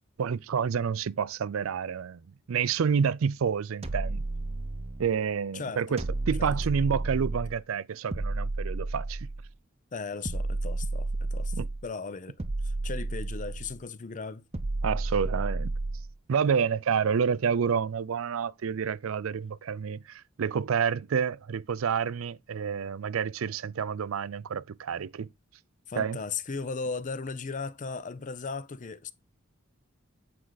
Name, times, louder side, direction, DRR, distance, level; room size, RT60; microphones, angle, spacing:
voice 1, 0.2-2.2 2.5-4.2 5.0-9.3 11.5-11.7 14.8-15.7 16.3-25.3 26.0-26.2, right 6 dB, 75° right, 0.4 m, -29 dB
sound 1, 3.8-5.1 6.0-7.6 8.1-9.5 10.2-11.9 12.4-13.8 14.5-16.1, right 2 dB, 30° right, 0.7 m, -32 dB
voice 2, 5.5-6.0 6.4-6.5 9.9-12.4 12.6-14.4 25.9-29.1, left 4 dB, 40° left, 0.6 m, -37 dB
8.6 x 4.7 x 3.9 m
head